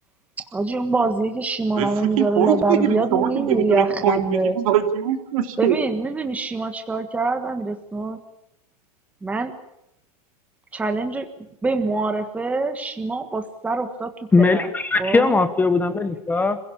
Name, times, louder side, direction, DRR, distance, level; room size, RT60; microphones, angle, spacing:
voice 1, 0.5-4.6 5.6-8.2 9.2-9.5 10.7-11.3 11.6-14.7 15.0-15.4, right 3 dB, 5° right, 7 dB, 1.5 m, -24 dB
voice 2, 2.2-5.8, right 10 dB, 65° right, 6 dB, 3.2 m, -22 dB
voice 3, 14.3-16.6, left 3 dB, 10° left, 10 dB, 1.2 m, -19 dB
26.5 x 17.0 x 8.6 m, 0.83 s
supercardioid pair, 150°, 19 cm